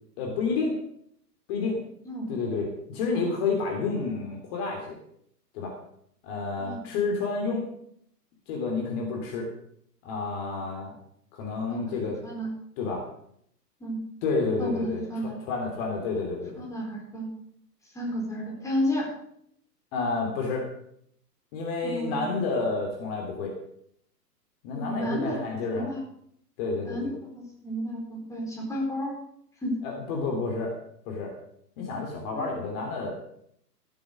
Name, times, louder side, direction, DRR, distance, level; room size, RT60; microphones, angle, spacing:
voice 1, 0.2-0.8 1.5-1.8 2.3-5.0 5.5-5.7 6.2-7.6 8.5-9.5 10.0-10.9 11.3-12.2 12.8-13.0 14.2-16.6 19.9-20.7 21.5-23.5 24.6-25.9 26.6-27.1 29.8-30.7 31.1-31.3 31.8-33.1, left 4 dB, 35° left, 1 dB, 3.1 m, -30 dB
voice 2, 11.7-12.5 13.8-14.0 14.6-15.4 16.6-17.3 17.9-19.1 21.8-22.3 24.7-25.4 25.7-26.0 26.8-29.1 29.6-29.8 32.3-32.6, equal, 5° left, -3 dB, 4.3 m, -32 dB
15.5 x 7.9 x 6.4 m, 0.70 s
figure-of-eight pair, 115°, 49 cm